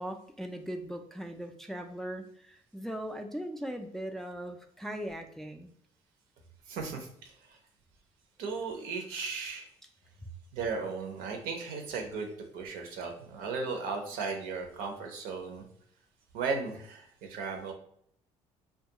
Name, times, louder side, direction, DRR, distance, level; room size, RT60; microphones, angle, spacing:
voice 1, 0.0-5.7, equal, ahead, 4 dB, 0.3 m, -39 dB
voice 2, 6.7-7.6 8.4-9.7 10.5-15.6 16.3-17.7, right 4 dB, 80° right, 3 dB, 0.6 m, -36 dB
2.3 x 2.2 x 2.8 m, 0.66 s
supercardioid pair, 75°, 14 cm